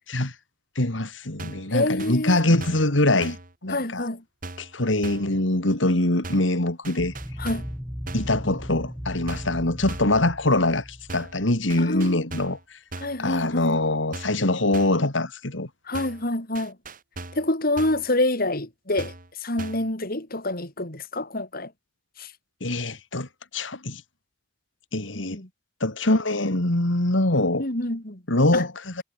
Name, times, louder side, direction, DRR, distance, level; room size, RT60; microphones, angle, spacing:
voice 1, 0.7-3.4 3.6-4.1 4.6-7.1 8.1-12.8 13.2-15.7 22.6-24.0 24.9-25.4 25.8-27.6 28.3-29.0, left 2 dB, 90° left, 3.1 m, -23 dB
sound 1, 1.4-1.7 2.0-2.9 3.2-3.5 4.4-4.7 5.0-5.4 6.2-6.6 6.8-7.8 8.1-8.4 9.3-9.6 9.9-10.2 11.1-11.4 11.7-12.6 12.9-13.2 14.1-14.5 14.7-15.1 15.9-16.3 16.6-17.5 17.8-18.1 19.0-19.3 19.6-19.9, right 2 dB, 45° right, 3.1 m, -39 dB
voice 2, 1.7-2.4 3.7-4.2 7.4-7.7 11.8-12.3 13.0-13.8 15.9-16.8 17.3-19.1 19.4-21.7 22.2-22.3 25.1-25.5 27.6-28.2 28.5-28.7, left 1 dB, 50° left, 4.4 m, -27 dB
sound 2, 7.0-11.6, equal, ahead, 5.5 m, -36 dB
head